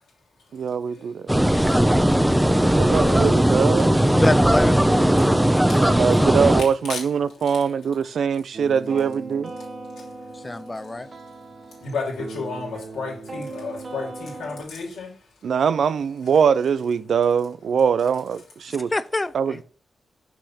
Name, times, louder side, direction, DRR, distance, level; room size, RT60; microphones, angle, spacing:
voice 1, 0.5-1.3 2.8-4.2 5.8-9.5 15.4-18.9 19.3-19.6, right 6 dB, 75° right, 0.5 m, -22 dB
sound 1, 1.3-6.6, right 1 dB, 10° right, 0.8 m, -18 dB
voice 2, 2.9-3.3 6.6-7.0 11.8-15.1, left 4 dB, 85° left, 3.0 m, -32 dB
voice 3, 4.1-4.8 10.4-11.1 18.9-19.6, left 2 dB, 25° left, 0.4 m, -26 dB
sound 2, 8.5-14.6, right 3 dB, 50° right, 1.6 m, -38 dB
6.3 x 5.7 x 4.1 m
supercardioid pair, 50°, 0 cm